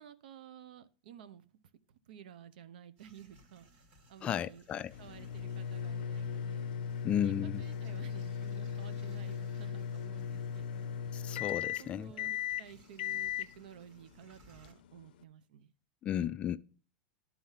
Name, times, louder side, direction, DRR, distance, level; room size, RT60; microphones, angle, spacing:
voice 1, 0.0-1.5 1.9-3.6 4.1-4.7 5.0-6.7 7.2-11.0 11.8-15.7, right 9 dB, 75° right, 0.8 m, -53 dB
sound 1, 3.0-14.7, right 1 dB, 45° right, 2.6 m, -64 dB
voice 2, 4.2-4.9 7.0-7.6 11.1-12.1 16.0-16.6, left 10 dB, 25° left, 0.3 m, -34 dB
sound 2, 4.9-15.2, left 8 dB, 80° left, 0.5 m, -38 dB
11.5 x 4.3 x 5.6 m
supercardioid pair, 155°, 5 cm